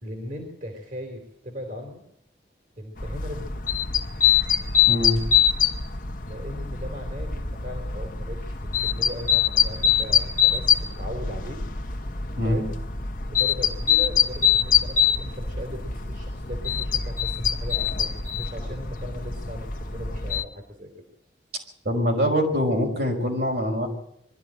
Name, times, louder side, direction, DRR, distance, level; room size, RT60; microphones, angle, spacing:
voice 1, 0.0-2.0 2.8-3.9 6.2-11.6 12.4-12.7 13.3-21.1, left 1 dB, 50° right, 2 dB, 3.7 m, -38 dB
sound 1, 3.0-20.4, left 8 dB, 50° left, 1.3 m, -24 dB
voice 2, 4.9-5.2 12.3-12.6 21.8-23.9, equal, 65° right, 1 dB, 5.4 m, -24 dB
23.0 x 13.5 x 8.9 m, 0.78 s
head